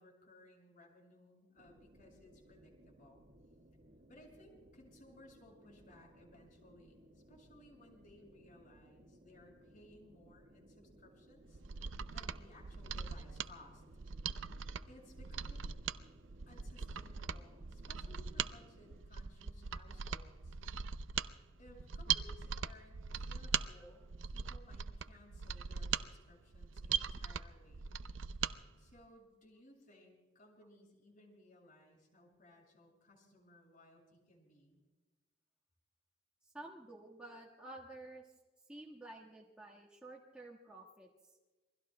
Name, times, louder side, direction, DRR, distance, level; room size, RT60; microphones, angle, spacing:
voice 1, 0.0-3.2 4.1-13.8 14.9-15.8 16.5-20.6 21.6-27.9 28.8-34.8, left 1 dB, 45° left, 0 dB, 6.5 m, -61 dB
sound 1, 1.6-19.0, right 1 dB, 55° right, 1.6 m, -63 dB
Mechanisms, 11.5-28.6 28.9-29.0, right 7 dB, 85° right, 0.6 m, -40 dB
voice 2, 36.4-38.3 38.7-41.1, right 2 dB, 5° right, -4 dB, 1.5 m, -51 dB
28.0 x 23.0 x 2.2 m, 1.2 s
head